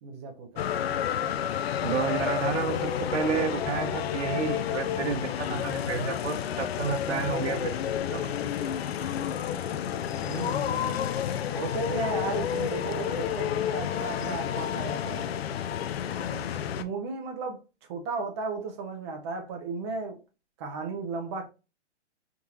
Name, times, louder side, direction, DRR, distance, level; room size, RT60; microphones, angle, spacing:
voice 1, 0.0-0.6 10.2-11.0 11.5-15.3 16.3-16.4 16.8-17.6 17.9-20.2 20.6-21.5, right 4 dB, 25° right, 0.6 m, -35 dB
sound 1, 0.6-16.8, left 9 dB, 60° left, 0.5 m, -30 dB
voice 2, 1.8-7.7 8.1-8.2, right 6 dB, 80° right, 0.9 m, -30 dB
sound 2, 2.2-8.0, left 6 dB, 80° left, 1.1 m, -44 dB
3.7 x 2.9 x 2.3 m
hypercardioid pair, 150°, 35 cm